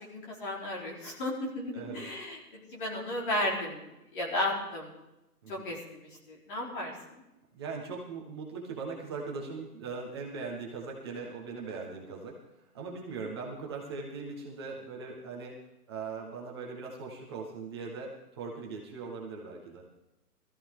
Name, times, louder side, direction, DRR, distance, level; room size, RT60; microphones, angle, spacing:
voice 1, 0.0-3.8 4.1-4.9 5.5-7.2, left 1 dB, 30° left, -3 dB, 4.0 m, -34 dB
voice 2, 1.7-2.1 5.4-5.7 7.6-12.4 12.7-15.6 15.9-19.8, right 4 dB, 15° right, -2 dB, 1.4 m, -40 dB
21.0 x 14.5 x 3.8 m, 0.94 s
hypercardioid pair, 170°, 48 cm